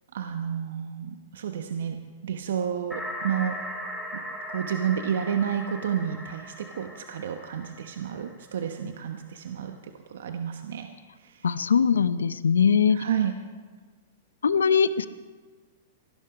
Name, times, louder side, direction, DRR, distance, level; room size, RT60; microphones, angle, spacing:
voice 1, 0.1-2.0 2.2-3.6 4.1-4.2 4.5-9.7 10.1-10.9 11.2-11.5 12.9-13.3, right 8 dB, 75° right, 6 dB, 1.0 m, -30 dB
sound 1, 2.9-8.6, equal, ahead, 3.2 m, -38 dB
voice 2, 11.4-13.0 14.4-15.1, left 6 dB, 85° left, 15 dB, 0.6 m, -21 dB
17.0 x 11.0 x 5.0 m, 1.4 s
hypercardioid pair, 115°, 0 cm